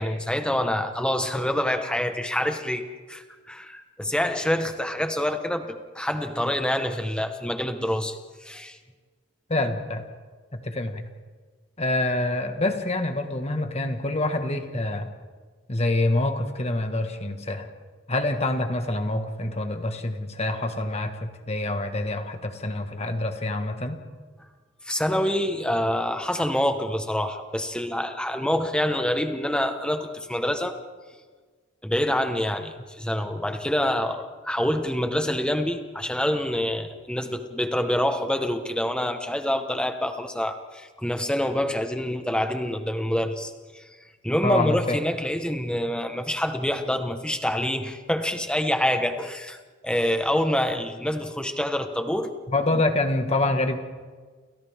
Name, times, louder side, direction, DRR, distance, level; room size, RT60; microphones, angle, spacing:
voice 1, 0.0-8.8 24.8-30.8 31.8-43.8 44.2-49.6 49.8-52.3, left 1 dB, 5° left, 6 dB, 1.4 m, -26 dB
voice 2, 9.5-10.0 10.5-11.1 11.8-15.1 15.7-17.7 18.1-24.0 44.4-45.0 52.5-53.8, left 2 dB, 30° left, 6 dB, 1.8 m, -26 dB
29.5 x 29.0 x 3.7 m, 1.5 s
head